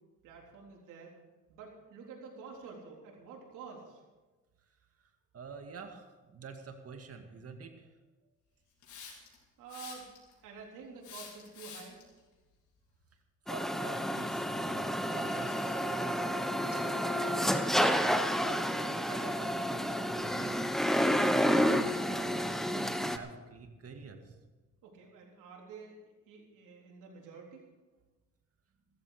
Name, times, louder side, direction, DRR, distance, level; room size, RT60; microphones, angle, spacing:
voice 1, 0.2-1.1 1.5-4.0 9.6-10.1 10.4-12.0 16.7-17.6 24.8-27.7, right 5 dB, 90° right, -1 dB, 3.8 m, -49 dB
voice 2, 5.3-7.9 13.5-15.9 18.4-20.6 21.1-24.3, right 5 dB, 50° right, 5 dB, 2.2 m, -47 dB
Hiss, 8.8-9.3 9.7-10.3 11.0-12.0, left 6 dB, 75° left, 5.0 m, -47 dB
sound 1, 13.5-23.2, equal, ahead, 1.1 m, -30 dB
15.5 x 14.0 x 5.0 m, 1.2 s
cardioid pair, 90°, 30 cm